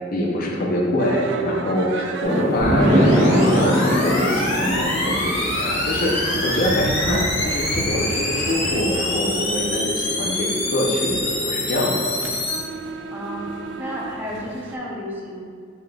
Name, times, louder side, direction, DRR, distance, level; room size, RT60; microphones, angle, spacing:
voice 1, 0.0-12.1, left 1 dB, 50° left, -1 dB, 0.6 m, -24 dB
sound 1, 1.0-14.8, right 3 dB, 70° right, 0.3 m, -33 dB
Fireworks, 2.2-6.7, equal, 50° right, 1.4 m, -22 dB
sound 2, 2.6-12.6, left 1 dB, 75° left, 1.2 m, -25 dB
voice 2, 13.1-13.5 13.8-15.5, equal, 10° right, -5 dB, 0.6 m, -32 dB
5.6 x 3.3 x 2.3 m, 2.2 s
head